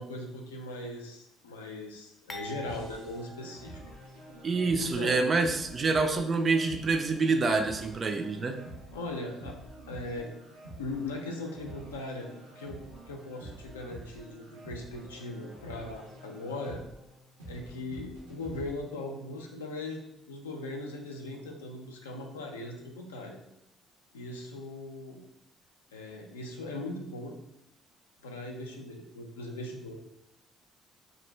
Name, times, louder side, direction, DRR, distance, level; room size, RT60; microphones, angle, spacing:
voice 1, 0.0-3.8 4.8-5.2 8.9-9.6 9.9-10.3 10.8-12.3 12.6-16.8 17.5-23.4 24.1-25.2 25.9-27.3 28.2-29.9, left 2 dB, 80° left, 2 dB, 0.3 m, -39 dB
sound 1, 2.3-4.5 4.8-5.0 5.8-6.0, left 1 dB, 20° left, 0.5 m, -46 dB
sound 2, 2.6-18.7, right 1 dB, 85° right, 0.6 m, -48 dB
voice 2, 4.4-8.6, right 3 dB, 40° right, 6 dB, 0.3 m, -27 dB
2.4 x 2.1 x 3.2 m, 0.84 s
figure-of-eight pair, 45°, 0 cm